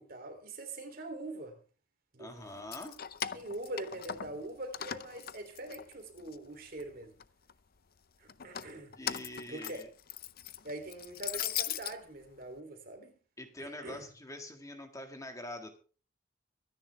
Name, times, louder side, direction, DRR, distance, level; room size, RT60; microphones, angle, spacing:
voice 1, 0.0-1.6 2.1-2.5 3.3-7.1 8.2-8.9 9.5-9.8 10.6-13.1 13.6-14.1, right 2 dB, 45° right, 3.2 m, -43 dB
voice 2, 2.2-3.0 9.0-9.9 13.4-15.8, left 1 dB, 15° left, 1.8 m, -44 dB
Keys jangling, 2.5-4.4 4.7-6.4 6.8-7.5 8.3-11.9, left 10 dB, 50° left, 0.6 m, -39 dB
24.0 x 10.0 x 3.4 m
head